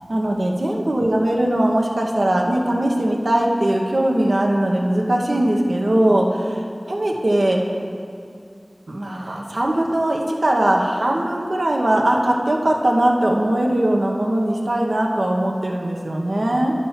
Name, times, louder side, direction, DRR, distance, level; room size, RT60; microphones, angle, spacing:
voice 1, 0.1-6.5 6.9-7.6 8.9-16.7, right 1 dB, 85° right, 0 dB, 1.0 m, -20 dB
11.0 x 4.5 x 5.7 m, 2.3 s
wide cardioid pair, 45°, 0 cm